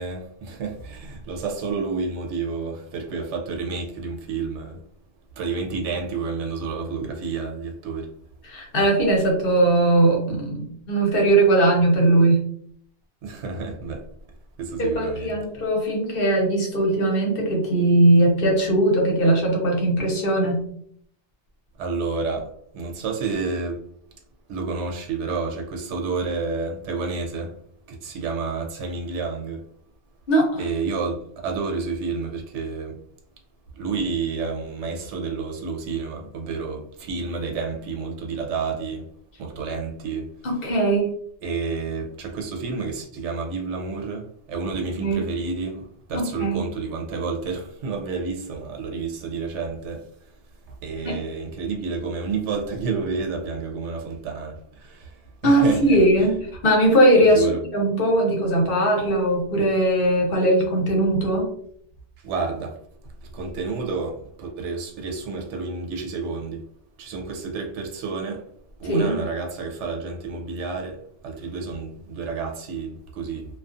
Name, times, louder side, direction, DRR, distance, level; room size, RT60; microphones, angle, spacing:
voice 1, 0.0-4.8 5.4-8.1 13.2-14.1 14.6-15.4 21.8-23.8 24.5-27.5 27.9-29.6 30.6-33.0 33.8-39.0 39.4-40.3 41.4-50.1 50.8-56.0 57.3-57.6 62.2-62.8 63.2-66.6 67.0-68.4 68.8-73.5, right 4 dB, 85° right, 0.9 m, -30 dB
voice 2, 8.4-12.5 14.8-20.6 30.3-30.6 40.4-41.1 45.0-45.2 46.1-46.7 51.0-51.2 55.4-57.5 57.7-61.5 68.9-69.2, right 1 dB, 60° left, 0.9 m, -19 dB
2.4 x 2.3 x 2.4 m
omnidirectional pair, 1.2 m